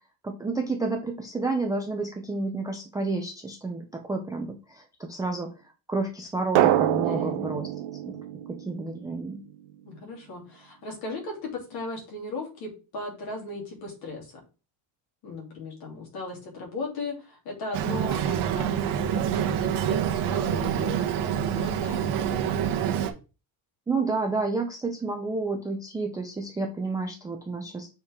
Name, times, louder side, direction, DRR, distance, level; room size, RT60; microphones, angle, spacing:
voice 1, 0.2-5.5 5.9-7.7 8.0-8.2 8.5-9.4 23.9-27.9, right 3 dB, 10° right, 3 dB, 0.3 m, -30 dB
Drum, 6.6-9.3, right 13 dB, 85° right, 0.8 m, -25 dB
voice 2, 7.0-7.6 9.8-14.3 15.2-22.6, left 3 dB, 55° left, -1 dB, 3.0 m, -37 dB
Boat Water vehicle, 17.7-23.1, right 9 dB, 55° right, 1.1 m, -26 dB
6.5 x 4.4 x 3.6 m, 0.32 s
cardioid pair, 175°, 47 cm